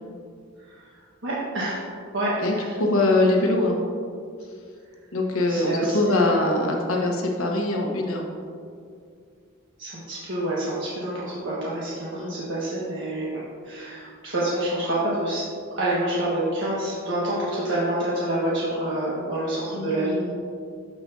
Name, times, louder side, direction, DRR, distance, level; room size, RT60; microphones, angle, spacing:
voice 1, 1.2-1.8 2.1-2.7 5.5-6.4 9.8-13.3 13.6-15.4 15.8-20.2, right 1 dB, 65° right, -8 dB, 1.4 m, -27 dB
voice 2, 2.4-3.8 5.1-8.2 12.1-12.3 19.7-20.4, left 2 dB, 85° left, 1 dB, 1.2 m, -23 dB
12.5 x 5.0 x 2.7 m, 2.2 s
head